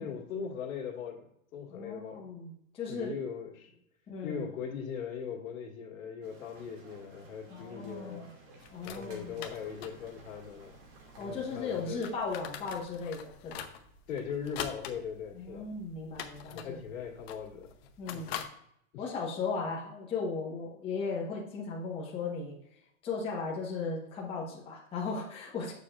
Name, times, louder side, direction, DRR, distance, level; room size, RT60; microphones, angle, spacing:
voice 1, 0.0-2.3 2.9-3.7 4.2-8.2 8.8-10.8 11.2-12.0 14.1-15.7 16.5-18.5 18.9-19.1, left 7 dB, 75° left, 1 dB, 1.9 m, -40 dB
voice 2, 1.7-3.1 4.1-4.4 7.5-8.3 8.7-9.4 11.2-13.7 15.3-16.8 18.0-18.3 19.0-22.5 23.0-25.7, left 4 dB, 15° left, -5 dB, 1.1 m, -36 dB
sound 1, 6.2-12.2, right 3 dB, 50° right, 2.2 m, -55 dB
sound 2, 8.6-18.4, left 9 dB, 45° left, 0.8 m, -45 dB
8.5 x 6.9 x 2.4 m, 0.74 s
supercardioid pair, 165°, 41 cm